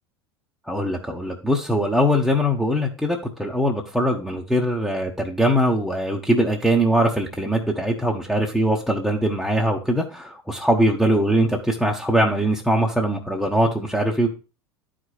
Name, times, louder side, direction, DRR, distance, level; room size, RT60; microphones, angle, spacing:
voice 1, 0.7-14.3, equal, ahead, -1 dB, 1.1 m, -21 dB
12.0 x 5.0 x 2.5 m, 0.33 s
hypercardioid pair, 80°, 14 cm